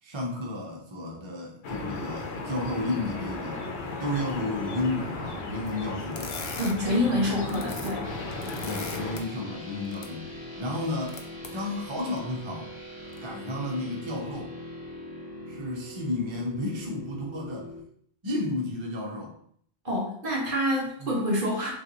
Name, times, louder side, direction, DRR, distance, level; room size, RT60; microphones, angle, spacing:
voice 1, 0.0-3.7 4.0-6.3 8.6-11.2 11.5-12.7 13.2-14.5 15.5-17.7 18.2-19.4 21.0-21.1, left 2 dB, 30° right, -1 dB, 0.6 m, -32 dB
sound 1, 1.6-9.2, left 2 dB, 75° left, 1.0 m, -35 dB
sound 2, 6.1-6.7 7.3-7.9 8.2-9.2 9.8-10.1 10.7-11.5 12.2-12.3 13.0-13.2, left 4 dB, 45° left, 0.5 m, -40 dB
voice 2, 6.6-8.1 19.8-21.7, left 1 dB, 50° right, -4 dB, 1.6 m, -27 dB
sound 3, 8.0-17.8, equal, 25° left, 1.2 m, -42 dB
6.3 x 2.4 x 2.9 m, 0.63 s
omnidirectional pair, 1.1 m